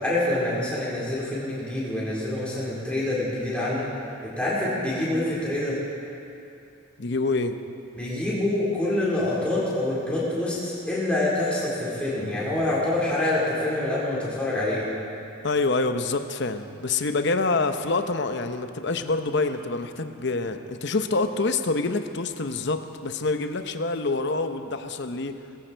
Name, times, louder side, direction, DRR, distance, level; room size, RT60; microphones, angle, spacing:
voice 1, 0.0-3.9 4.2-5.8 7.9-14.9, left 1 dB, 5° left, -8 dB, 4.3 m, -26 dB
voice 2, 7.0-7.5 15.4-25.4, left 3 dB, 55° left, 8 dB, 0.8 m, -26 dB
20.5 x 15.0 x 4.5 m, 2.6 s
head